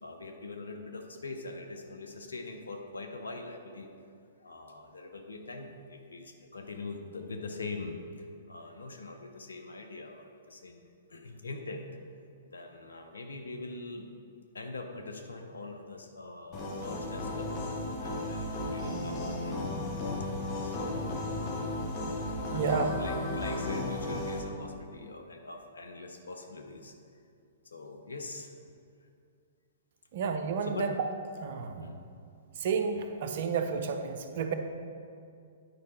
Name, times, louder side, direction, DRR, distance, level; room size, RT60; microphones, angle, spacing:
voice 1, 0.0-3.9 4.4-10.8 11.1-11.9 12.5-14.0 14.5-17.6 18.0-19.7 20.3-21.3 22.5-26.9 27.6-28.5 30.6-30.9 31.6-32.0, left 3 dB, 80° left, 4 dB, 0.8 m, -43 dB
sound 1, 16.5-24.4, left 1 dB, 35° left, 1.5 m, -34 dB
Wild animals, 19.5-23.6, left 1 dB, 10° left, 0.7 m, -47 dB
voice 2, 22.5-22.9 30.1-31.1 31.4-31.9 32.5-34.5, right 5 dB, 55° right, 6 dB, 0.6 m, -31 dB
9.6 x 4.7 x 4.3 m, 2.4 s
figure-of-eight pair, 115°, 0 cm